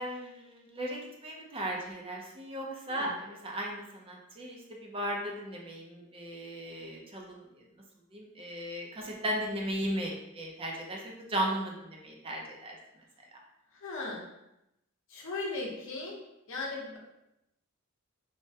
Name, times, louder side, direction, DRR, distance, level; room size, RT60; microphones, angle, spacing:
voice 1, 0.0-7.6 8.1-12.8 13.3-13.4, right 1 dB, 25° right, -1 dB, 0.5 m, -36 dB
voice 2, 13.7-14.2 15.1-16.2 16.5-17.0, left 3 dB, 60° left, -3 dB, 0.8 m, -37 dB
3.3 x 2.1 x 2.7 m, 0.87 s
head